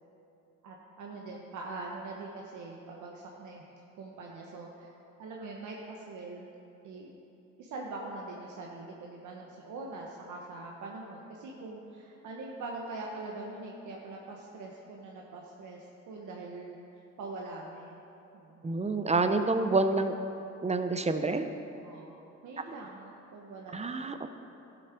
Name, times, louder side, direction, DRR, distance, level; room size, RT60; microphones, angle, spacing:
voice 1, 0.6-3.6 4.0-4.9 5.2-6.5 6.8-7.1 7.6-18.0 18.3-18.6 21.7-22.1 22.4-24.0, right 2 dB, 75° right, -2 dB, 1.2 m, -43 dB
voice 2, 18.6-20.1 20.6-21.4 23.7-24.3, right 3 dB, 20° right, 8 dB, 0.7 m, -28 dB
12.5 x 7.7 x 4.5 m, 3.0 s
cardioid pair, 90°, 30 cm